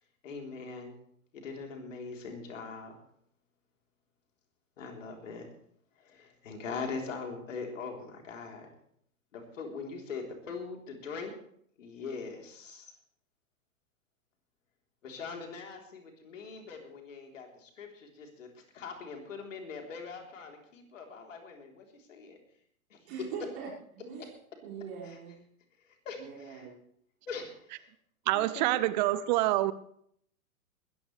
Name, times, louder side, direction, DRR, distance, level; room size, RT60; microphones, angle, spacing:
voice 1, 0.2-1.0 1.3-3.0 4.8-5.5 6.0-8.7 9.3-11.3 11.8-13.0 15.0-22.4 22.9-23.1 25.0-25.2 25.8-26.7 27.3-27.9 28.3-28.9, left 4 dB, 60° left, 2 dB, 3.9 m, -42 dB
voice 2, 23.0-23.7 23.9-24.3 24.6-25.4 26.2-26.7, right 6 dB, 50° right, -5 dB, 5.7 m, -41 dB
voice 3, 28.3-29.7, right 16 dB, 30° right, 16 dB, 0.7 m, -26 dB
20.5 x 14.5 x 3.4 m, 0.67 s
figure-of-eight pair, 105°, 43 cm